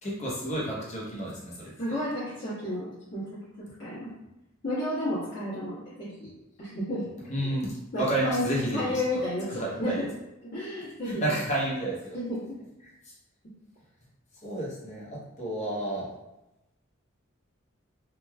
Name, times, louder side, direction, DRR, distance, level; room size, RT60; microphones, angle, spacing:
voice 1, 0.0-1.7 7.3-8.9 9.5-10.1 11.0-12.2 12.8-12.9 14.4-16.1, right 1 dB, 35° left, -5 dB, 0.8 m, -31 dB
voice 2, 1.8-4.1 4.6-6.3 6.6-7.0 7.9-9.9 10.5-11.2 12.1-12.4, left 1 dB, 60° left, -13 dB, 1.2 m, -32 dB
3.1 x 2.2 x 2.3 m, 0.95 s
head